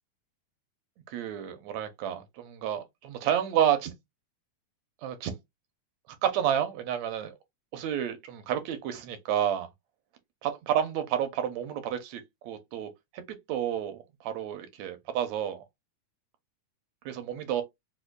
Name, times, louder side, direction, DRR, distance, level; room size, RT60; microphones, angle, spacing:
voice 1, 1.1-3.9 5.0-5.4 6.2-7.3 7.7-9.7 10.7-13.2 13.5-15.6 17.1-17.6, right 10 dB, 80° right, 1.8 m, -30 dB
5.1 x 2.2 x 2.3 m
omnidirectional pair, 3.4 m